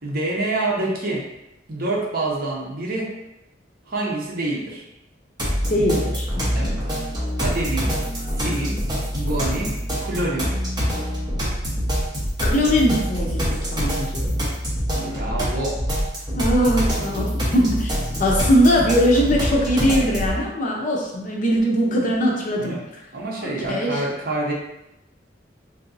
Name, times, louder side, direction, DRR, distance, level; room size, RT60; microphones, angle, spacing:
voice 1, 0.0-1.2 1.7-3.1 3.9-4.9 6.5-6.7 7.4-8.0 8.4-8.9 9.1-9.7 10.0-10.5 14.9-15.8 22.6-22.8 23.1-24.5, right 2 dB, 55° right, -2 dB, 0.8 m, -26 dB
sound 1, 5.4-20.4, equal, 25° right, 1.0 m, -25 dB
voice 2, 5.7-6.7 12.4-14.4 16.4-17.9 18.2-22.7 23.4-24.0, equal, 45° left, -2 dB, 0.6 m, -21 dB
3.7 x 2.7 x 2.6 m, 0.89 s
head